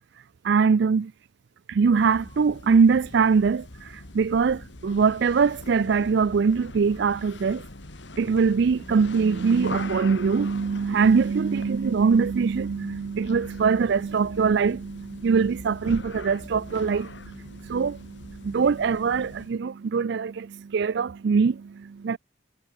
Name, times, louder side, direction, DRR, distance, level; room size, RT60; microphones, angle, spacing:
voice 1, 0.4-1.1 1.7-7.6 8.2-22.2, right 5 dB, 55° right, 0.4 m, -23 dB
sound 1, 1.8-19.6, left 2 dB, 60° left, 2.2 m, -42 dB
head